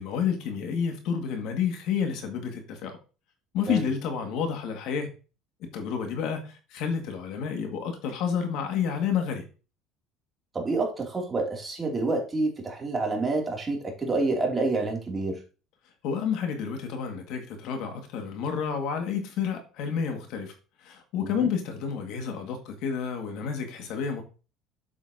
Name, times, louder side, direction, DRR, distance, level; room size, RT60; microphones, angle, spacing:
voice 1, 0.0-3.0 3.5-5.1 5.7-9.5 16.0-20.5 20.8-24.2, left 7 dB, 65° left, 2.0 m, -30 dB
voice 2, 10.5-15.4 21.2-21.5, right 3 dB, 20° right, 2.7 m, -28 dB
8.2 x 7.2 x 2.8 m
cardioid pair, 120°, 0 cm